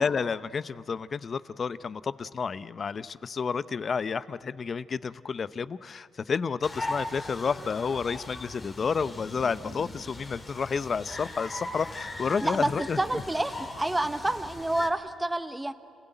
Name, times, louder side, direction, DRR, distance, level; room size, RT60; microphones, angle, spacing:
voice 1, 0.0-13.2, left 5 dB, 40° left, 16 dB, 0.6 m, -30 dB
sound 1, 6.6-14.9, left 2 dB, 25° left, 2.9 m, -39 dB
voice 2, 13.0-15.7, right 1 dB, 10° right, 10 dB, 0.9 m, -28 dB
30.0 x 16.5 x 9.1 m, 2.2 s
cardioid pair, 100°, 0 cm